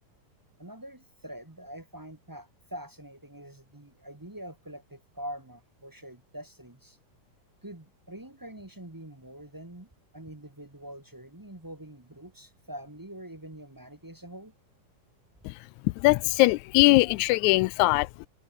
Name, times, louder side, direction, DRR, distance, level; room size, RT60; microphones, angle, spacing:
voice 1, 0.6-7.0 7.6-14.5, right 1 dB, 15° right, 0.7 m, -44 dB
voice 2, 15.8-18.3, left 21 dB, 80° left, 1.8 m, -21 dB
open air
omnidirectional pair, 3.6 m